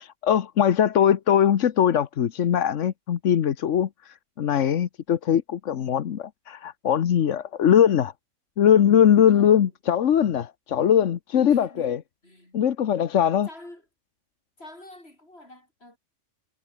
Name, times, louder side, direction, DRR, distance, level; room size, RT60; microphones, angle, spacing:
voice 1, 0.0-8.1 8.6-12.0 12.5-13.5, left 9 dB, 85° left, 1.3 m, -21 dB
voice 2, 9.3-9.7 11.4-12.6 13.4-13.9 14.6-16.0, left 1 dB, 55° left, 7.4 m, -46 dB
omnidirectional pair, 1.2 m